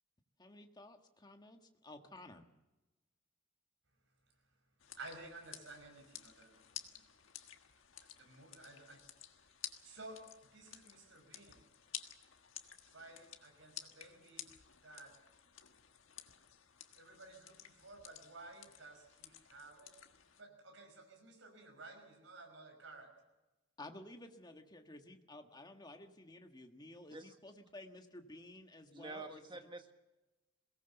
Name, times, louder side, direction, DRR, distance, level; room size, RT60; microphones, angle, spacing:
voice 1, 0.4-2.5 23.8-29.4, left 1 dB, 20° left, 5 dB, 1.5 m, -53 dB
sound 1, 4.8-20.4, left 11 dB, 85° left, 1.5 m, -53 dB
voice 2, 5.0-6.6 8.2-9.0 9.8-10.2 10.5-11.6 12.9-14.5 14.8-15.1 16.9-19.9 20.4-23.1, right 2 dB, 75° right, 4 dB, 5.9 m, -54 dB
voice 3, 28.9-29.9, right 2 dB, 25° right, 6 dB, 1.6 m, -48 dB
22.0 x 18.0 x 6.9 m, 1.1 s
head